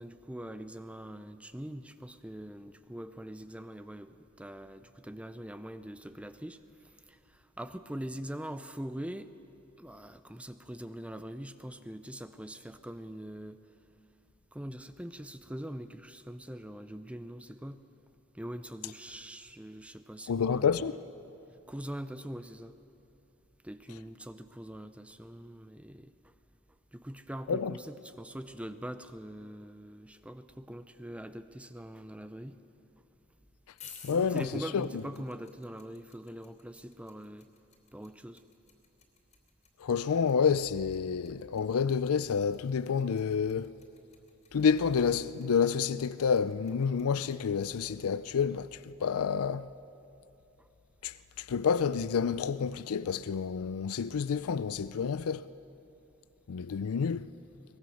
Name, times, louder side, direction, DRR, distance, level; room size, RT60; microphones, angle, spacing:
voice 1, 0.0-6.6 7.1-9.3 9.8-13.6 14.5-17.8 18.3-20.9 21.7-22.7 23.6-26.1 26.9-32.6 34.1-37.5 37.9-38.4, right 1 dB, 5° right, 0.5 m, -43 dB
voice 2, 20.3-20.9 27.5-27.7 34.0-34.5 34.7-35.0 39.8-43.8 44.5-49.7 51.0-55.5 56.5-57.3, left 6 dB, 90° left, 0.4 m, -29 dB
sound 1, 33.7-47.8, left 6 dB, 35° left, 2.8 m, -55 dB
23.0 x 20.0 x 6.4 m
head